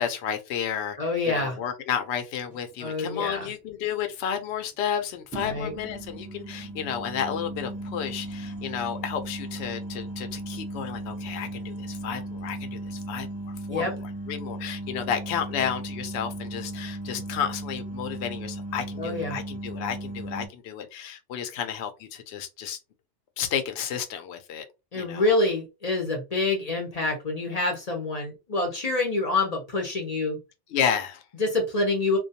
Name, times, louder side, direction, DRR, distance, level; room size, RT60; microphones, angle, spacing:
voice 1, 0.0-22.8 23.4-24.7 24.9-25.3 30.7-31.2, left 8 dB, 70° left, 0.8 m, -32 dB
voice 2, 1.0-1.6 2.8-3.5 5.4-5.7 13.7-13.9 19.0-19.4 24.9-30.4 31.4-32.2, left 2 dB, 40° left, 0.6 m, -26 dB
sound 1, 2.5-2.7 5.3-20.5, right 1 dB, 10° right, 0.8 m, -36 dB
2.2 x 2.2 x 2.7 m
omnidirectional pair, 1.2 m